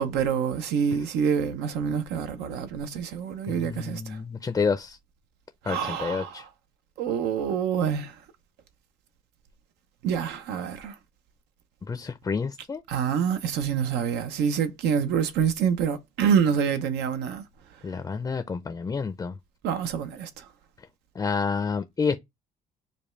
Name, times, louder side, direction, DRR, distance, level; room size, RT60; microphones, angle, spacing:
voice 1, 0.0-4.2 5.6-6.5 7.0-8.1 10.0-10.9 12.9-17.4 19.6-20.4, right 7 dB, 80° right, 0.6 m, -26 dB
voice 2, 3.5-5.0 5.7-6.4 11.9-12.8 17.8-19.3 21.2-22.2, left 5 dB, 20° left, 0.4 m, -29 dB
5.1 x 2.2 x 3.1 m
cardioid pair, 110°, 17 cm